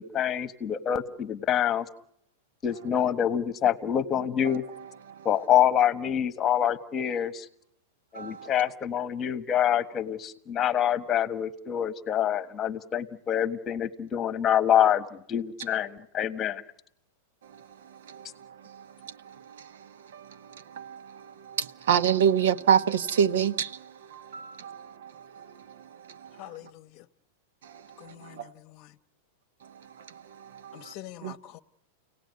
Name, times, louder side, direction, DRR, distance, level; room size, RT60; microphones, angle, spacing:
voice 1, 0.0-1.8 2.6-4.6 5.2-7.5 8.1-16.6, left 10 dB, 20° left, 1.4 m, -26 dB
voice 2, 4.4-5.3 8.1-8.7 15.7-15.8 17.4-26.7 27.6-28.5 29.6-30.9 31.2-31.4, right 8 dB, 80° right, 1.1 m, -30 dB
voice 3, 26.4-27.1 28.0-29.0 30.7-31.6, left 14 dB, 40° left, 0.9 m, -45 dB
30.0 x 18.0 x 9.6 m
supercardioid pair, 150°, 0 cm